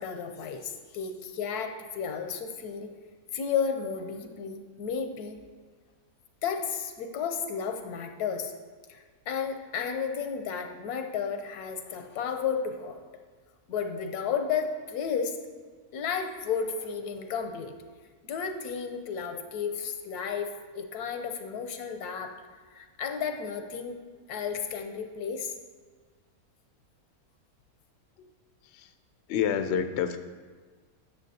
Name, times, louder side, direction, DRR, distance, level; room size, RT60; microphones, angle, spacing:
voice 1, 0.0-2.9 3.3-5.4 6.4-8.5 8.9-13.0 13.7-15.4 15.9-17.7 18.2-22.3 22.7-24.0 24.3-25.5, left 6 dB, 85° left, 6 dB, 1.3 m, -33 dB
voice 2, 29.3-30.2, left 8 dB, 65° left, 9 dB, 0.7 m, -28 dB
11.0 x 6.8 x 2.7 m, 1.5 s
omnidirectional pair, 1.6 m